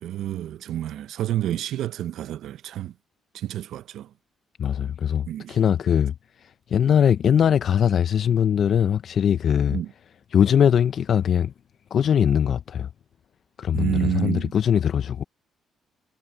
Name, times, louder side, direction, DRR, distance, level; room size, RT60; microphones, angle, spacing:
voice 1, 0.0-2.9 3.3-4.1 5.3-5.6 9.7-9.9 13.7-14.5, right 12 dB, 80° right, 0.6 m, -29 dB
voice 2, 4.6-6.1 6.4-9.8 10.3-11.5 11.9-12.9 13.6-15.2, left 8 dB, 60° left, 0.4 m, -21 dB
cardioid pair, 90°, 0 cm